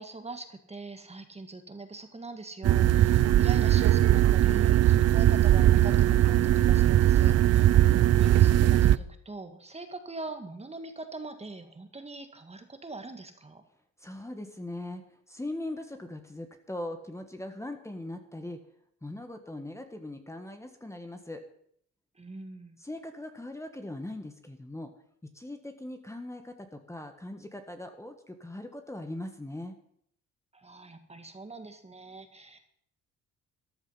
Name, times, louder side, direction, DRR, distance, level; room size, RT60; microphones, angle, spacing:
voice 1, 0.0-7.7 8.0-13.6 22.2-22.8 30.5-32.8, right 3 dB, 20° right, 7 dB, 1.8 m, -42 dB
sound 1, 2.6-9.0, right 13 dB, 55° right, 0.5 m, -20 dB
voice 2, 14.0-18.6 19.0-21.4 22.8-24.9 25.3-29.7, left 1 dB, 10° left, 6 dB, 1.5 m, -40 dB
14.0 x 11.0 x 5.7 m, 0.67 s
cardioid pair, 90°, 30 cm